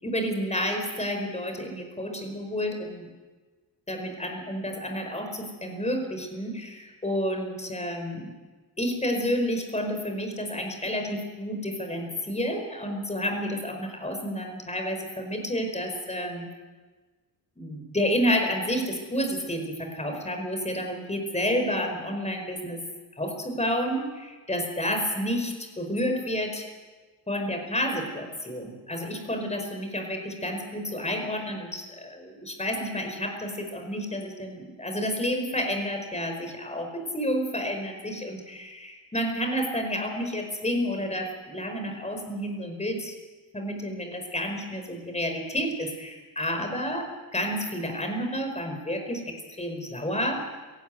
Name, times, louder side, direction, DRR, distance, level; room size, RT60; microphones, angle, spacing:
voice 1, 0.0-3.1 3.9-8.3 8.8-16.5 17.6-22.8 23.2-26.6 27.3-43.1 43.5-50.3, equal, 15° left, 4 dB, 5.0 m, -30 dB
17.5 x 15.5 x 9.4 m, 1.3 s
cardioid pair, 100°, 38 cm